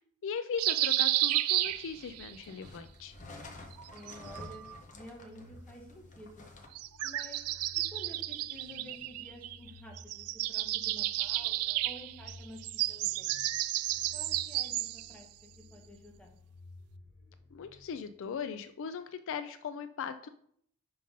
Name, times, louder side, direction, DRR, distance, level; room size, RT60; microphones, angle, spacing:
voice 1, 0.2-3.1 17.5-20.3, left 6 dB, 65° left, 10 dB, 0.4 m, -39 dB
sound 1, 0.6-2.3 3.7-4.8 6.7-9.7 10.0-15.1, right 15 dB, 90° right, 0.3 m, -32 dB
sound 2, 1.6-6.7, left 2 dB, 35° left, 0.8 m, -51 dB
sound 3, 1.6-18.4, left 2 dB, 15° right, 1.8 m, -56 dB
voice 2, 3.9-6.5 7.0-7.4 7.7-13.4 14.1-16.3, equal, 5° left, 0 dB, 1.1 m, -51 dB
5.4 x 3.8 x 5.2 m, 0.66 s
head